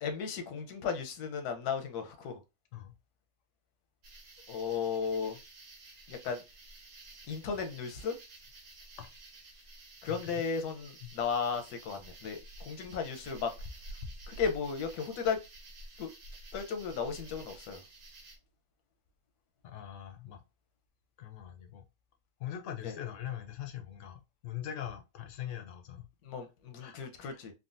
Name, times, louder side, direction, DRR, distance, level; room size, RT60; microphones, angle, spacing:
voice 1, 0.0-2.4 4.5-5.4 6.1-6.4 7.3-8.1 10.0-13.5 14.3-15.4 16.0-16.1 16.5-17.8 22.8-22.9 26.2-27.5, left 6 dB, 90° left, 1.2 m, -35 dB
sound 1, 4.0-18.4, right 2 dB, 75° right, 1.4 m, -51 dB
voice 2, 19.6-20.4 21.2-21.8 22.4-26.1 26.8-27.0 27.3-27.4, left 10 dB, 70° left, 0.8 m, -42 dB
3.7 x 2.1 x 2.5 m
omnidirectional pair, 1.6 m